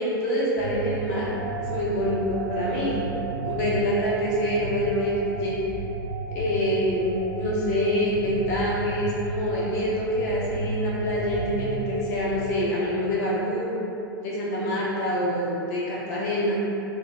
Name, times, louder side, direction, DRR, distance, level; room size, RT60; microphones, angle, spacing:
voice 1, 0.0-1.3 1.6-3.0 3.4-5.6 6.3-13.7 14.2-16.6, equal, 45° left, -6 dB, 0.6 m, -26 dB
sound 1, 0.6-12.5, right 4 dB, 30° right, 0.6 m, -33 dB
2.1 x 2.1 x 3.6 m, 2.9 s
figure-of-eight pair, 95°, 12 cm